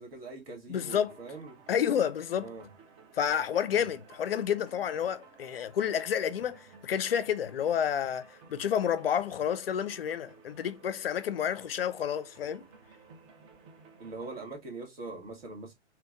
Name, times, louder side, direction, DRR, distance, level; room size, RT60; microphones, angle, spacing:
voice 1, 0.0-1.6 2.4-2.7 3.7-3.9 14.0-15.7, right 3 dB, 55° right, 1.7 m, -42 dB
voice 2, 0.7-1.2 1.7-2.5 3.1-12.6, left 8 dB, 55° left, 0.5 m, -30 dB
sound 1, 0.7-14.4, right 4 dB, 30° right, 0.7 m, -56 dB
3.3 x 3.0 x 2.3 m
figure-of-eight pair, 115°, 35 cm